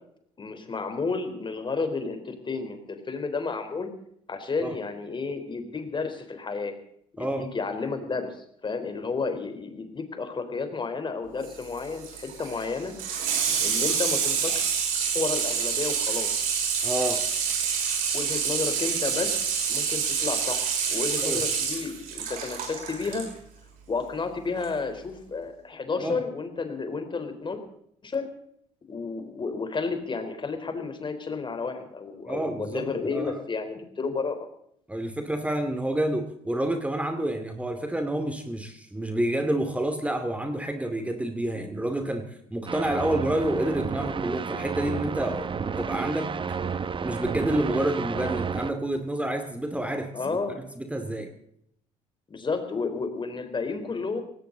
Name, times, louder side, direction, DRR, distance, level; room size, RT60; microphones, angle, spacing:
voice 1, 0.4-3.9 4.3-6.7 7.1-12.9 13.6-14.7 15.1-16.3 18.1-23.3 23.9-27.6 28.0-28.3 28.9-34.5 50.1-50.6 52.3-54.2, left 4 dB, 30° left, 7 dB, 3.9 m, -31 dB
voice 2, 7.2-7.5 16.8-17.3 21.2-21.4 26.0-26.2 32.3-33.4 34.9-45.5 45.8-46.6 47.0-50.4 50.8-51.3, right 1 dB, 10° right, 7 dB, 2.4 m, -29 dB
Water tap faucet / Sink (filling or washing), 11.4-23.3 24.6-24.7, right 6 dB, 70° right, 6.2 m, -27 dB
Foreboding doom, 42.7-48.7, right 6 dB, 35° right, 1.2 m, -31 dB
18.5 x 17.0 x 3.9 m, 0.71 s
supercardioid pair, 70°, 15 cm